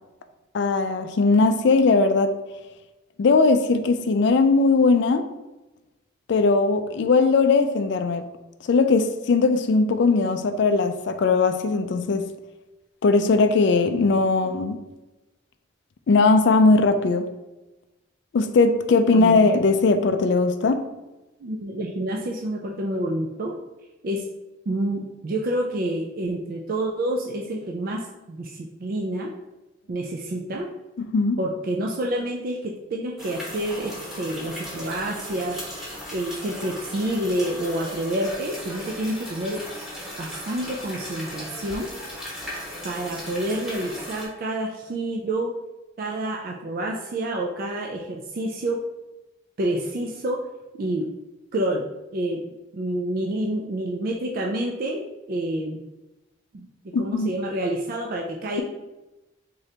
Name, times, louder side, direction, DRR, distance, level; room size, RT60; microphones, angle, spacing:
voice 1, 0.5-2.3 3.2-5.3 6.3-8.2 8.6-12.3 13.0-14.8 16.1-17.3 18.3-20.8 31.0-31.4 56.9-57.3, left 3 dB, 60° left, 8 dB, 0.3 m, -19 dB
voice 2, 21.4-23.5 24.0-24.2 24.7-29.3 29.9-30.7 31.4-35.6 36.1-39.6 40.2-41.9 42.8-45.6 46.0-48.8 49.6-50.4 50.8-51.1 51.5-51.9 52.1-52.4 52.7-55.8 56.5-56.7 57.0-58.6, right 1 dB, 45° right, 0 dB, 0.3 m, -28 dB
sound 1, 33.2-44.3, equal, ahead, 0.9 m, -37 dB
3.8 x 3.3 x 2.8 m, 1.0 s
head